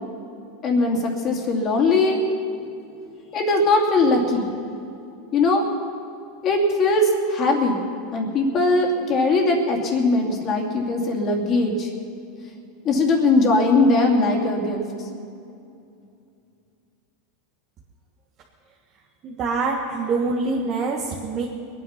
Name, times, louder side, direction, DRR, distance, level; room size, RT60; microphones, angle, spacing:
voice 1, 0.6-2.2 3.3-4.5 5.3-5.6 6.4-7.8 8.1-11.9 12.8-14.8, left 2 dB, 35° left, 1 dB, 2.6 m, -20 dB
voice 2, 19.2-21.5, right 3 dB, 35° right, -2 dB, 1.6 m, -25 dB
22.5 x 9.4 x 5.9 m, 2.6 s
supercardioid pair, 130°, 0 cm